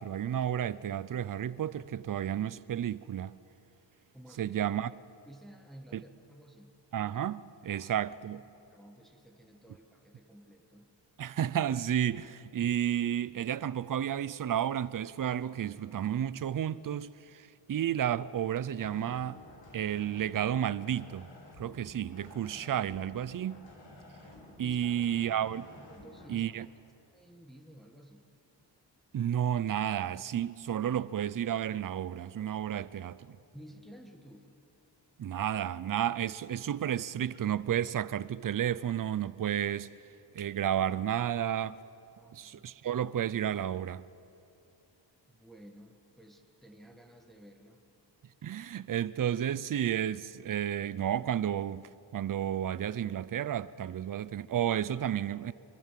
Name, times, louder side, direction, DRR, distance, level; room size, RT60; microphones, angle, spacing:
voice 1, 0.0-3.4 4.4-4.9 5.9-6.0 6.9-8.4 11.2-19.4 19.7-21.3 21.6-23.7 24.6-25.7 26.3-26.7 29.1-33.4 35.2-39.9 40.3-41.8 42.3-44.0 48.4-55.5, right 10 dB, 45° right, 0.6 m, -32 dB
voice 2, 4.1-4.6 5.3-6.7 7.7-8.1 8.3-8.4 8.7-10.9 24.6-25.0 25.9-26.6 27.1-28.3 33.5-34.5 42.2-42.6 45.3-47.8, right 1 dB, ahead, 1.6 m, -53 dB
sound 1, 18.7-26.3, left 2 dB, 75° left, 5.4 m, -52 dB
25.0 x 23.5 x 7.5 m
wide cardioid pair, 155°, 44 cm